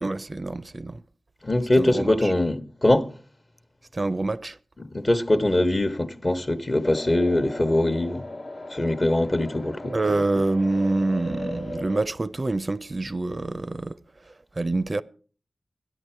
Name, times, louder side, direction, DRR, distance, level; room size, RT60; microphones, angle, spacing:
voice 1, 0.0-1.0 1.7-2.3 3.9-4.6 9.9-15.0, right 2 dB, 40° right, 0.5 m, -26 dB
voice 2, 1.4-3.1 4.8-8.3 8.7-9.9, left 1 dB, 40° left, 1.0 m, -22 dB
sound 1, 6.8-12.0, left 1 dB, 65° left, 1.1 m, -37 dB
13.5 x 11.0 x 4.4 m
cardioid pair, 45°, 0 cm